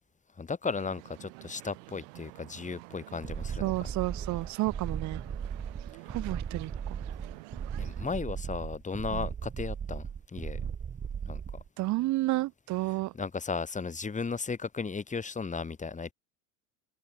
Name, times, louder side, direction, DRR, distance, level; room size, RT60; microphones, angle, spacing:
voice 1, 0.4-3.9 7.8-10.0 10.3-10.6 11.3-11.4 13.1-16.1, left 4 dB, 20° left, 3.8 m, -35 dB
sound 1, 0.6-8.2, right 33 dB, 75° right, 4.2 m, -49 dB
sound 2, 3.2-11.7, right 7 dB, 25° right, 2.0 m, -37 dB
voice 2, 3.6-5.2 6.1-6.7 9.1-9.2 11.8-13.1, right 19 dB, 50° right, 0.8 m, -31 dB
supercardioid pair, 100°, 37 cm